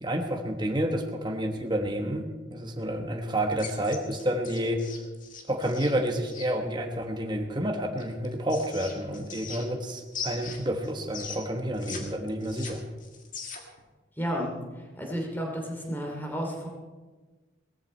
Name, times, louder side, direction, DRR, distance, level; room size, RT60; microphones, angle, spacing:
voice 1, 0.0-2.2 2.5-4.8 5.5-12.8, right 1 dB, 20° right, 3 dB, 1.2 m, -29 dB
sound 1, 3.5-6.5 8.0-9.8 10.1-12.0 12.3-13.8, left 5 dB, 40° left, 1.9 m, -40 dB
voice 2, 14.2-14.5 15.0-16.7, equal, 10° left, 0 dB, 2.8 m, -32 dB
18.0 x 14.0 x 4.4 m, 1.3 s
head